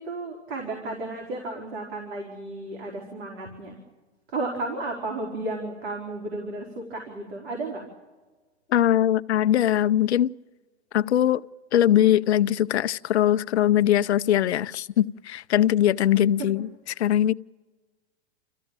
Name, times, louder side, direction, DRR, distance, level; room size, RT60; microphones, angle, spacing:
voice 1, 0.0-3.8 4.3-7.8 16.4-16.5, right 2 dB, 65° right, 4.6 m, -33 dB
voice 2, 8.7-10.3 10.9-11.4 11.7-16.7 17.0-17.3, left 11 dB, 80° left, 0.7 m, -21 dB
28.5 x 15.0 x 8.9 m
hypercardioid pair, 130°, 33 cm